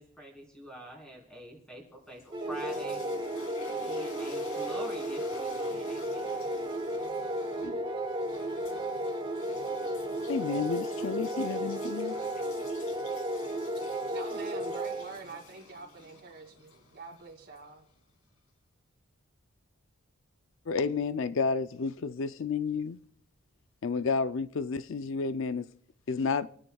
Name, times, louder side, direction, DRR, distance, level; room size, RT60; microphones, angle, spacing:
voice 1, 0.0-3.0 3.8-6.4, right 1 dB, 5° left, 3.7 m, -45 dB
sound 1, 2.0-18.0, left 2 dB, 85° left, 2.8 m, -51 dB
sound 2, 2.3-15.3, right 1 dB, 20° right, 0.9 m, -34 dB
voice 2, 10.3-12.2 20.7-23.0 23.8-25.6 26.1-26.5, left 5 dB, 65° left, 0.4 m, -31 dB
voice 3, 14.1-17.8, right 3 dB, 45° right, 2.4 m, -45 dB
29.0 x 9.9 x 2.3 m
head